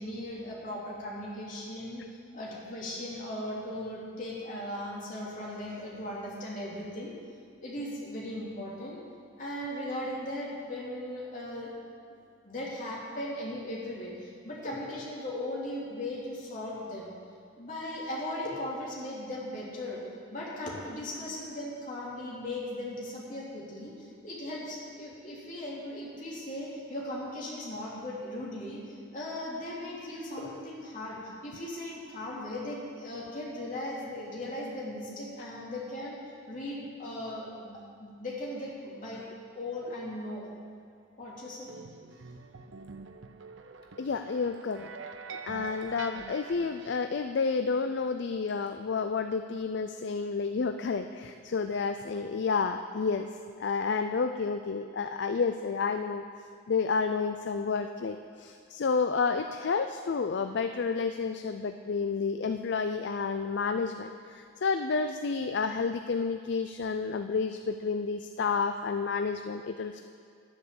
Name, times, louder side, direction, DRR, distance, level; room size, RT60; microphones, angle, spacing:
voice 1, 0.0-7.1 7.6-9.0 9.4-11.7 12.4-17.1 17.5-20.0 20.3-39.2 39.5-40.5 41.2-41.7, left 1 dB, 40° left, -5 dB, 3.1 m, -38 dB
sound 1, 41.7-47.2, right 5 dB, 70° right, 0.7 m, -45 dB
voice 2, 44.0-44.9 45.3-53.3 53.6-56.2 56.7-70.0, left 5 dB, 60° left, 8 dB, 0.4 m, -30 dB
11.0 x 10.0 x 7.0 m, 2.2 s
head